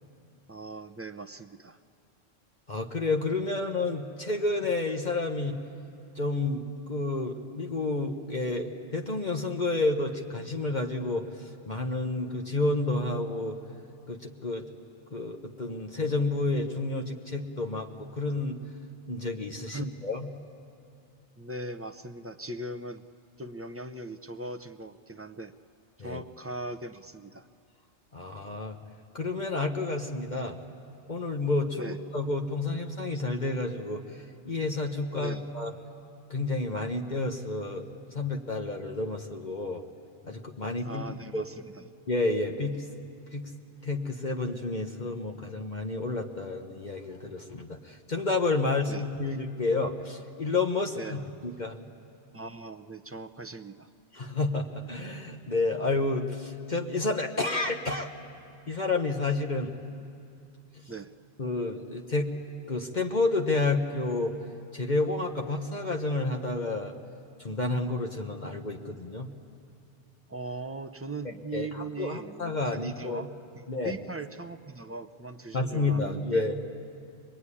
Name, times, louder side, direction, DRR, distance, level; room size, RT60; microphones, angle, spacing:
voice 1, 0.5-1.8 19.7-20.0 21.4-23.0 23.4-25.5 26.0-27.5 31.8-32.0 35.2-35.4 40.8-41.9 48.9-49.0 50.9-51.3 52.3-53.9 60.9-61.1 70.3-73.3 73.6-76.4, right 2 dB, 20° right, 7 dB, 0.4 m, -39 dB
voice 2, 2.7-5.6 6.1-13.6 14.1-14.7 15.1-18.6 19.1-20.3 26.0-26.2 28.1-28.8 29.1-30.6 31.1-35.7 36.3-39.8 40.2-41.0 41.3-41.5 42.1-42.8 43.3-43.5 43.8-51.8 54.1-58.1 58.7-59.7 61.4-62.3 62.7-64.4 64.7-66.9 67.4-69.3 71.2-73.2 73.7-74.0 75.5-76.5, left 2 dB, 45° left, 3 dB, 1.2 m, -30 dB
25.0 x 21.0 x 9.8 m, 2.5 s
omnidirectional pair, 1.2 m